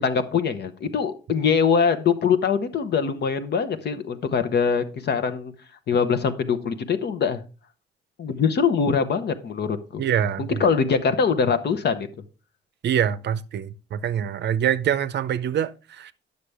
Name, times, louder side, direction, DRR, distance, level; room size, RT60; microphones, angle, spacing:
voice 1, 0.0-5.5 5.9-7.4 8.2-10.0 10.5-12.1, left 6 dB, 55° left, 0.9 m, -23 dB
voice 2, 10.0-10.6 12.8-16.1, right 9 dB, 60° right, 0.6 m, -25 dB
9.5 x 6.7 x 3.4 m
cardioid pair, 90°, 20 cm